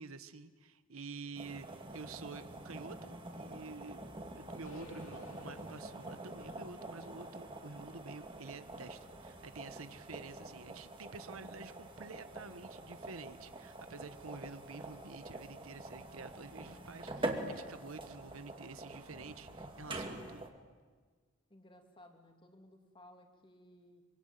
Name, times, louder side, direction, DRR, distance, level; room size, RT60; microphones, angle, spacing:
voice 1, 0.0-1.7 1.9-4.0 4.3-20.5, right 4 dB, 90° right, 11 dB, 1.3 m, -49 dB
voice 2, 1.4-1.7 21.5-24.0, left 1 dB, 25° left, 4 dB, 3.0 m, -59 dB
sound 1, 1.4-20.5, right 2 dB, 25° right, 2.5 m, -46 dB
sound 2, 4.7-8.7, left 1 dB, 85° left, 5.4 m, -55 dB
25.0 x 25.0 x 9.3 m, 1.4 s
head